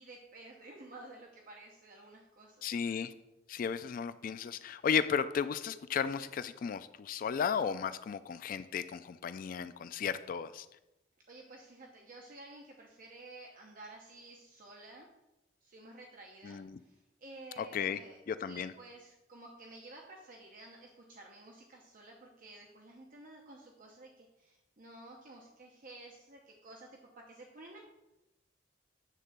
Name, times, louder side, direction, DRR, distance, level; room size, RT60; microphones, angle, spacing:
voice 1, 0.0-2.7 11.3-15.1 15.6-16.6 16.9-18.2 18.5-26.9 27.2-27.9, right 2 dB, 50° right, 0 dB, 0.9 m, -52 dB
voice 2, 2.6-3.1 3.5-10.7 16.4-16.8 17.6-18.0 18.3-18.7, left 7 dB, 50° left, 13 dB, 0.3 m, -34 dB
9.2 x 3.8 x 6.6 m, 0.96 s
head